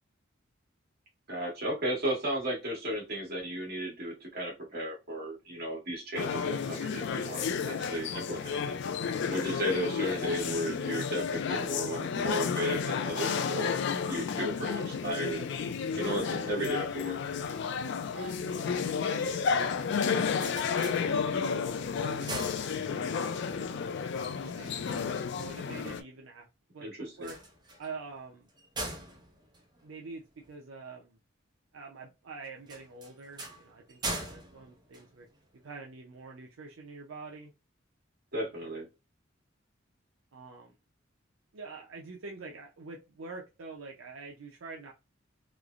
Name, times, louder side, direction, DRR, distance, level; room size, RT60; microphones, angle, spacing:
voice 1, 1.3-8.8 9.3-15.4 16.0-17.2 26.8-27.3 38.3-38.9, equal, 50° right, -2 dB, 1.3 m, -34 dB
sound 1, 6.2-26.0, left 6 dB, 60° left, 0.3 m, -32 dB
voice 2, 18.1-24.0 24.4-25.0 25.3-26.5 26.7-27.4 27.8-28.5 29.8-30.2 30.5-31.2 31.7-35.3 35.6-37.5 40.3-40.7 41.5-44.9, right 3 dB, 80° right, 0 dB, 0.5 m, -46 dB
sound 2, 20.3-21.6 22.0-23.3 27.1-30.5 32.6-35.7, right 2 dB, 20° right, 0.6 m, -42 dB
3.1 x 2.0 x 2.4 m, 0.27 s
head